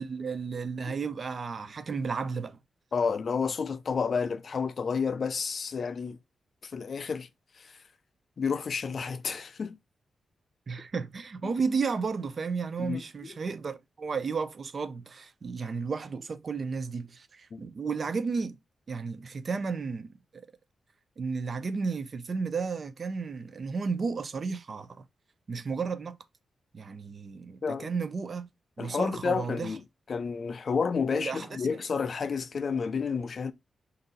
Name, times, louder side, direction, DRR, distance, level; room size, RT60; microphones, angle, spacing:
voice 1, 0.0-2.6 10.7-18.6 18.9-20.4 21.2-24.9 25.5-26.2 26.7-28.5 28.8-29.7 31.1-31.5, right 5 dB, 40° right, 0.4 m, -33 dB
voice 2, 2.9-6.2 6.6-7.3 7.6-7.8 8.4-9.8 11.4-11.5 12.8-13.3 17.5-17.6 27.6-27.9 28.8-29.8 30.1-33.5, left 5 dB, 45° left, 0.4 m, -30 dB
3.9 x 2.6 x 3.8 m
wide cardioid pair, 155°, 0 cm